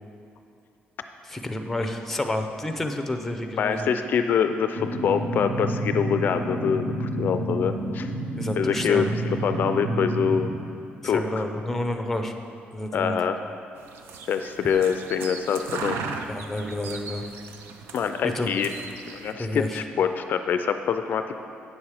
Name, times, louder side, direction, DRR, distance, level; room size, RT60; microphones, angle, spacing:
voice 1, 1.3-3.9 8.4-9.1 11.0-12.4 12.7-13.2 16.3-17.3 18.2-18.5 19.4-19.8, left 1 dB, 5° left, 5 dB, 0.6 m, -29 dB
voice 2, 3.6-8.1 8.6-9.1 9.4-10.5 11.0-11.4 12.9-13.4 14.3-16.0 17.9-18.7 19.1-21.4, left 7 dB, 55° left, 8 dB, 0.4 m, -25 dB
sound 1, 4.8-10.5, right 1 dB, 45° right, 1.3 m, -29 dB
sound 2, 13.8-19.3, right 4 dB, 85° right, 0.6 m, -37 dB
8.8 x 7.2 x 4.8 m, 2.6 s
cardioid pair, 125°, 4 cm